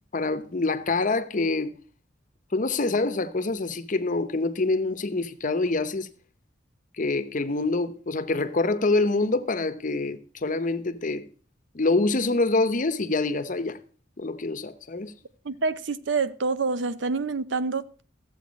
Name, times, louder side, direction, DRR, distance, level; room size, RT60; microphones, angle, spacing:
voice 1, 0.1-1.7 2.5-6.1 7.0-11.3 11.7-13.8 14.2-15.1, left 3 dB, 45° left, 0.9 m, -26 dB
voice 2, 15.4-18.0, right 4 dB, 75° right, 0.7 m, -27 dB
14.5 x 7.8 x 5.2 m
head